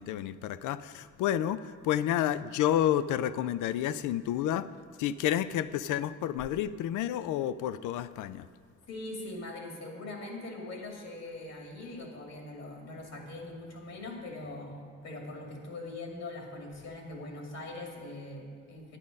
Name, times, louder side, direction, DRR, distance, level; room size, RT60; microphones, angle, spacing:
voice 1, 0.0-4.7 5.0-8.4, left 11 dB, 85° left, 15 dB, 0.5 m, -30 dB
voice 2, 8.9-19.0, left 2 dB, 60° left, 1 dB, 2.5 m, -42 dB
11.0 x 9.7 x 5.2 m, 2.3 s
cardioid pair, 90°, 30 cm